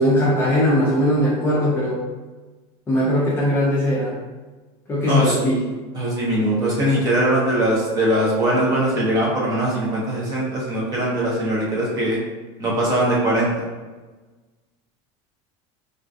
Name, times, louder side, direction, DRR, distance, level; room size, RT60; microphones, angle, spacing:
voice 1, 0.0-2.0 2.9-4.2 4.9-5.6, equal, 15° left, -7 dB, 0.5 m, -19 dB
voice 2, 5.0-5.4 5.9-12.2 12.6-13.6, right 1 dB, 25° right, -5 dB, 0.7 m, -21 dB
3.4 x 2.4 x 2.6 m, 1.3 s
cardioid pair, 175°, 15 cm